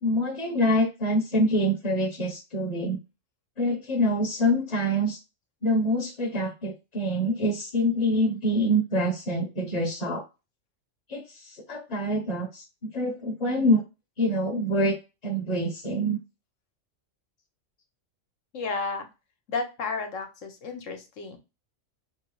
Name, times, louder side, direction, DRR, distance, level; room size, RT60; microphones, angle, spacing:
voice 1, 0.0-3.0 3.6-5.2 5.6-10.2 11.1-13.8 14.2-15.0 15.2-16.2, equal, 35° left, 0 dB, 0.9 m, -25 dB
voice 2, 18.5-19.1 19.5-21.4, left 4 dB, 75° left, 5 dB, 1.3 m, -32 dB
5.5 x 2.3 x 3.0 m, 0.27 s
omnidirectional pair, 1.3 m